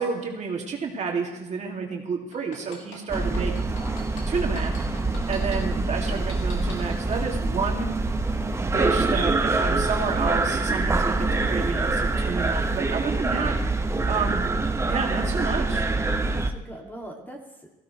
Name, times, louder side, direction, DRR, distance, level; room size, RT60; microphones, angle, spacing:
voice 1, 0.0-3.5 4.3-4.8 5.3-7.9 8.7-13.6 14.1-14.4 14.9-15.8, right 5 dB, 45° right, 1 dB, 2.3 m, -30 dB
sound 1, 2.3-5.6 6.1-7.2 7.7-7.8, left 3 dB, 90° left, 3.6 m, -41 dB
sound 2, 3.1-16.5, right 3 dB, 15° right, 0.9 m, -25 dB
voice 2, 3.2-4.2 13.1-13.7 16.3-17.8, right 1 dB, 10° left, 1 dB, 2.3 m, -41 dB
17.5 x 15.5 x 3.2 m, 1.0 s
cardioid pair, 110°, 17 cm